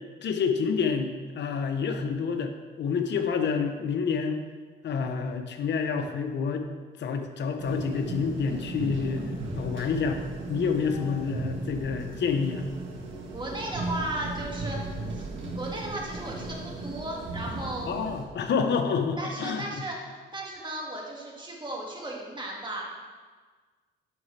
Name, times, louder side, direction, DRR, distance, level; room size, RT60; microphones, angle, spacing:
voice 1, 0.2-4.4 4.8-6.7 7.0-9.3 9.5-10.2 10.5-12.6 17.9-19.8, left 5 dB, 60° left, 6 dB, 0.9 m, -28 dB
sound 1, 7.6-18.2, right 2 dB, 75° right, 1.6 m, -36 dB
voice 2, 13.3-15.3 15.5-17.9 19.2-22.8, right 1 dB, 25° right, -2 dB, 2.1 m, -35 dB
9.9 x 5.9 x 3.3 m, 1.5 s
cardioid pair, 90°, 20 cm